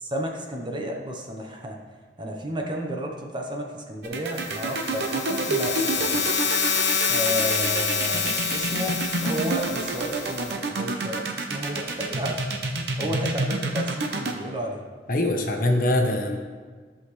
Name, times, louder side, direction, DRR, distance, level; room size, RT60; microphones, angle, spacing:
voice 1, 0.0-1.8 2.2-6.2 7.1-9.0 9.2-12.4 13.0-14.8, equal, 25° right, 1 dB, 0.9 m, -32 dB
sound 1, 4.0-14.3, right 3 dB, 65° right, 0.9 m, -28 dB
sound 2, 4.3-10.5, left 6 dB, 85° left, 1.5 m, -27 dB
voice 2, 15.1-16.4, left 1 dB, 50° left, 3 dB, 1.0 m, -23 dB
13.5 x 5.8 x 3.2 m, 1.5 s
head